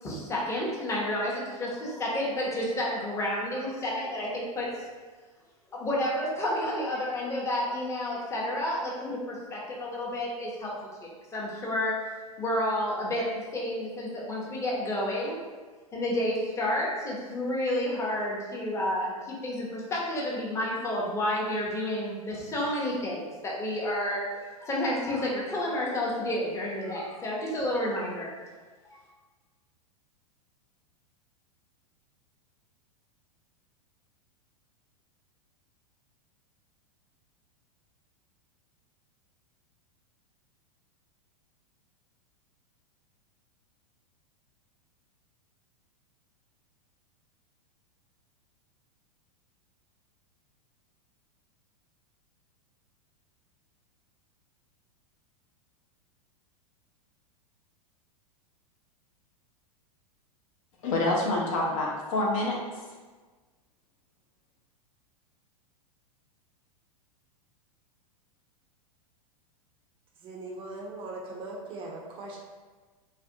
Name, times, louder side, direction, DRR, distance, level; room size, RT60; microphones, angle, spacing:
voice 1, 0.0-4.7 5.7-10.7 11.0-11.9 12.4-15.4 15.9-24.2 24.6-28.3 28.8-29.0, left 1 dB, 15° left, -4 dB, 0.6 m, -30 dB
voice 2, 60.8-62.8, left 2 dB, 60° left, -3 dB, 0.6 m, -27 dB
voice 3, 70.2-72.4, right 2 dB, 30° right, -1 dB, 0.4 m, -40 dB
2.4 x 2.1 x 2.6 m, 1.4 s
hypercardioid pair, 100°, 19 cm